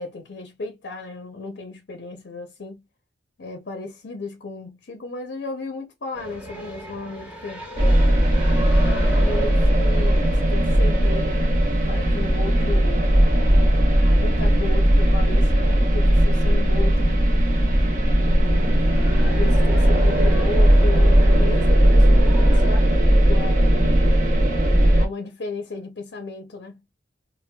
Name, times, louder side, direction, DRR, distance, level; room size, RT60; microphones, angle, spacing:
voice 1, 0.0-2.8 3.4-7.7 8.4-11.5 11.9-13.1 13.9-17.2 18.3-24.0 25.0-26.7, left 3 dB, 60° left, 0.5 m, -35 dB
sound 1, 6.1-22.7, right 1 dB, 10° right, 0.9 m, -37 dB
sound 2, 7.8-25.1, equal, 40° right, 0.8 m, -17 dB
4.2 x 2.1 x 2.2 m
head